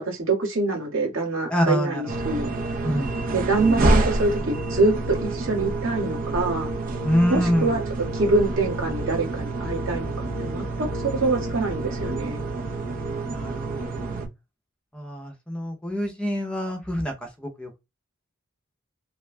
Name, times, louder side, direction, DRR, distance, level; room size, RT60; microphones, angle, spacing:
voice 1, 0.0-2.5 3.3-6.7 7.3-7.8 8.1-12.4, right 3 dB, 85° right, 1.6 m, -25 dB
voice 2, 1.5-2.2 2.8-3.4 7.0-7.7 13.2-14.0 14.9-17.7, equal, 5° left, 0.7 m, -26 dB
sound 1, 2.1-14.3, right 2 dB, 45° right, 0.7 m, -28 dB
3.4 x 2.3 x 3.2 m
head